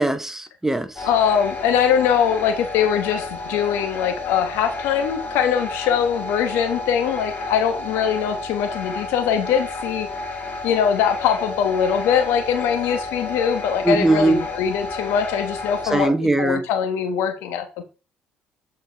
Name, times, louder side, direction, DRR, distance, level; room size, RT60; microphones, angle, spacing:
voice 1, 0.0-1.1 13.8-14.4 15.9-16.7, right 2 dB, 10° right, 0.9 m, -20 dB
voice 2, 1.0-10.1 10.6-17.8, left 8 dB, 80° left, 1.1 m, -22 dB
sound 1, 1.0-16.1, left 3 dB, 45° left, 2.0 m, -31 dB
7.9 x 4.6 x 3.4 m
supercardioid pair, 70°, 4 cm